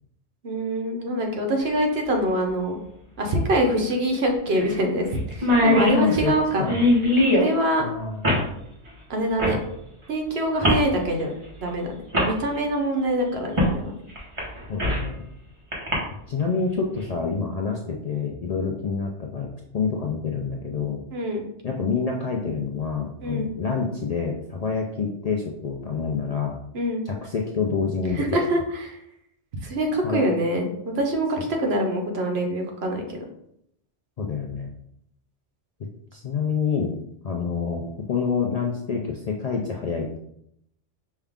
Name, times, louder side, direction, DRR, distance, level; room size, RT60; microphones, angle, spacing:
voice 1, 0.4-2.8 3.2-5.0 5.3-6.6 7.3-7.8 9.1-9.6 10.1-11.3 11.6-14.0 21.1-21.4 23.2-23.5 26.7-27.0 28.1-29.0 29.6-30.7 30.9-33.2, right 1 dB, 65° right, 2 dB, 1.0 m, -24 dB
sound 1, 1.6-1.7 3.5-3.6 3.9-4.0 4.5-4.8 5.0-5.1 5.3-7.5 8.2-8.5 9.4-9.6 10.6-10.9 11.7-11.8 12.1-12.3 13.6-13.7 14.2-15.1 15.7-15.9, left 1 dB, 30° right, 1.0 m, -21 dB
voice 2, 5.7-6.9 7.8-8.2 14.7-15.3 16.3-19.5 19.7-21.0 21.6-26.5 27.1-28.4 30.0-30.3 34.2-34.7 36.1-36.9 37.2-40.2, left 5 dB, 55° left, 0 dB, 0.4 m, -27 dB
5.4 x 2.4 x 3.5 m, 0.74 s
omnidirectional pair, 1.1 m